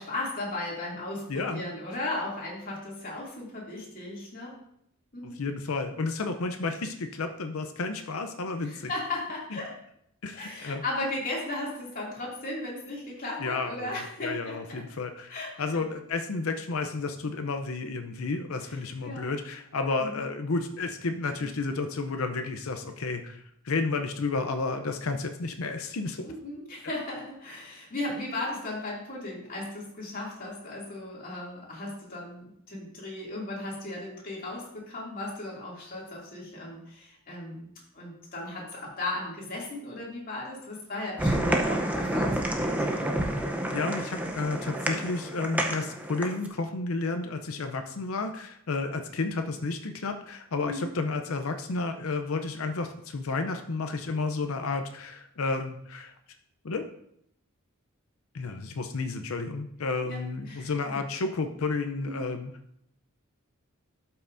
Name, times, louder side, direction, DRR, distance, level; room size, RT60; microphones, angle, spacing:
voice 1, 0.0-4.5 5.1-5.4 8.6-9.7 10.3-14.8 15.3-15.5 18.6-18.8 19.0-19.3 20.0-20.2 26.2-37.7 37.9-42.8 50.6-50.9 60.0-61.0 62.0-62.3, left 2 dB, 45° left, -4 dB, 2.6 m, -36 dB
voice 2, 1.3-1.6 5.2-8.9 9.5-9.6 10.2-10.8 13.4-26.2 43.7-56.1 56.6-56.9 58.3-62.5, left 3 dB, 85° left, 7 dB, 0.6 m, -31 dB
sound 1, 41.2-46.5, right 1 dB, 5° right, 0.7 m, -29 dB
12.5 x 5.7 x 2.6 m, 0.73 s
head